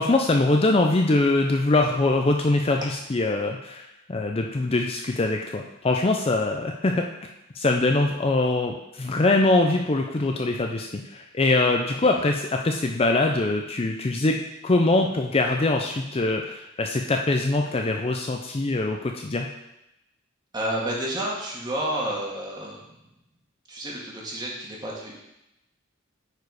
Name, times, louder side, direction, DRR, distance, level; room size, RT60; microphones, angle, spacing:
voice 1, 0.0-7.0 7.5-14.4 14.6-19.5, left 2 dB, 30° left, 2 dB, 0.5 m, -23 dB
voice 2, 20.5-23.0 23.7-25.2, right 1 dB, 20° right, -4 dB, 1.9 m, -30 dB
9.3 x 4.8 x 4.8 m, 0.89 s
head